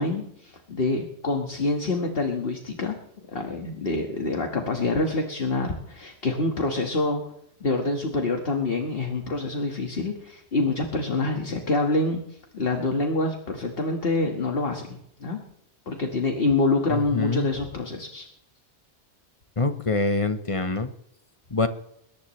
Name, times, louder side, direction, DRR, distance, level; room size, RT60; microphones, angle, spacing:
voice 1, 0.0-3.0 3.2-7.2 7.6-15.4 15.9-18.3, left 2 dB, 55° left, 2 dB, 1.9 m, -26 dB
voice 2, 16.9-17.5 19.6-20.9 21.5-21.7, left 3 dB, 30° left, 9 dB, 1.0 m, -25 dB
21.5 x 19.0 x 3.2 m, 0.76 s
omnidirectional pair, 1.2 m